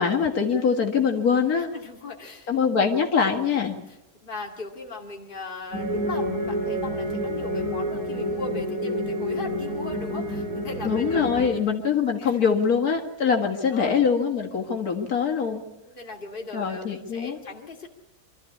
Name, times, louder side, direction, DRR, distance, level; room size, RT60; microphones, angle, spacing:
voice 1, 0.0-1.7 2.5-3.7 10.8-15.6 16.5-17.4, left 6 dB, 75° left, 2 dB, 2.3 m, -23 dB
voice 2, 1.6-2.5 3.9-11.6 12.2-12.4 13.2-13.9 15.8-17.9, left 3 dB, 35° left, 1 dB, 2.3 m, -38 dB
sound 1, 5.7-11.5, equal, 65° right, 8.2 m, -29 dB
25.0 x 13.5 x 8.5 m, 1.0 s
omnidirectional pair, 1.6 m